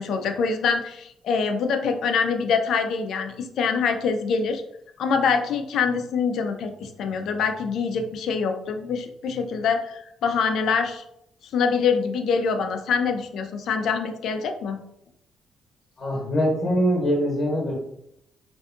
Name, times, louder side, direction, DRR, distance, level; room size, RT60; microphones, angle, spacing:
voice 1, 0.0-4.6 5.0-11.0 11.5-14.8, left 5 dB, 75° left, 6 dB, 0.3 m, -25 dB
voice 2, 16.0-17.7, equal, 30° left, -3 dB, 1.0 m, -23 dB
2.6 x 2.2 x 2.5 m, 0.76 s
cardioid pair, 90°, 0 cm